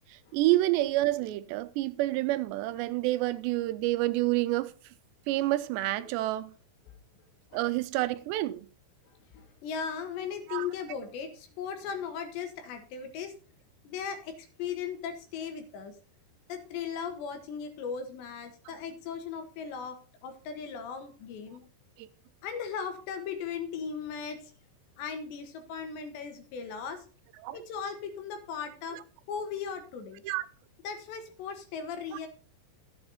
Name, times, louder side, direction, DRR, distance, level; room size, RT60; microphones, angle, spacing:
voice 1, 0.1-4.7 5.3-6.5 7.5-8.7 10.5-10.6 22.0-22.1 27.4-27.6 28.9-29.0 30.2-30.4 32.1-32.2, right 17 dB, 90° right, 2.9 m, -28 dB
voice 2, 9.3-13.3 13.9-16.0 16.5-21.6 22.4-24.5 25.0-27.1 27.5-29.0 29.3-30.2 30.8-32.3, left 6 dB, 85° left, 3.9 m, -37 dB
13.5 x 8.2 x 4.3 m
omnidirectional pair, 4.9 m